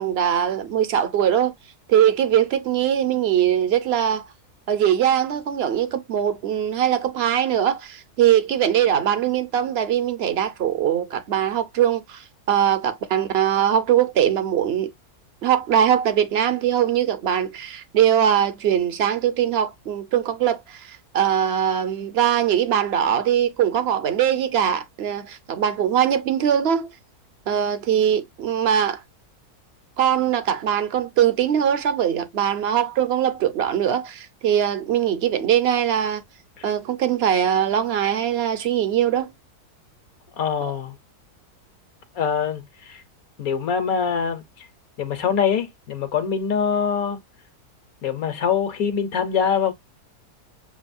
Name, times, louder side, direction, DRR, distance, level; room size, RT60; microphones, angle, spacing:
voice 1, 0.0-1.5 1.9-4.2 4.7-14.9 15.4-26.9 27.5-29.0 30.0-36.2 36.6-39.3 40.6-40.7, right 9 dB, 50° right, 0.9 m, -21 dB
voice 2, 40.4-41.0 42.1-43.0 43.4-44.7 45.0-47.2 48.0-49.7, left 7 dB, 65° left, 1.4 m, -24 dB
7.1 x 2.5 x 2.5 m
omnidirectional pair, 1.7 m